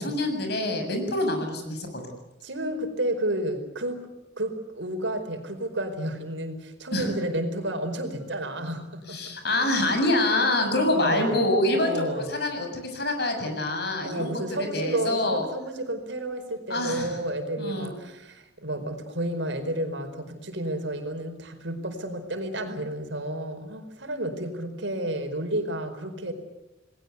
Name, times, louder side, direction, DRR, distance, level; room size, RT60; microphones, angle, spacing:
voice 1, 0.0-1.9 6.9-7.1 9.1-14.4 14.7-15.4 16.7-17.2 17.6-17.9, left 1 dB, 55° left, 5 dB, 7.2 m, -26 dB
voice 2, 2.4-4.0 4.4-9.4 10.8-11.4 11.7-12.3 14.0-26.3, right 1 dB, 75° right, 7 dB, 4.7 m, -31 dB
29.5 x 20.5 x 8.3 m, 0.94 s
head